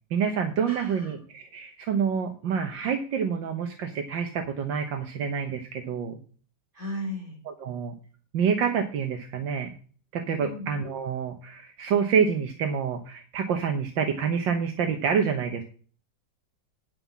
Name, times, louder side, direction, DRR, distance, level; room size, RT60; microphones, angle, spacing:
voice 1, 0.1-6.2 7.5-7.9 8.3-9.7 10.1-15.6, right 6 dB, 80° right, 4 dB, 1.8 m, -27 dB
voice 2, 0.6-1.1 6.7-7.4 10.3-10.7, left 1 dB, 50° right, -1 dB, 4.0 m, -36 dB
10.5 x 5.6 x 7.2 m, 0.41 s
omnidirectional pair, 2.0 m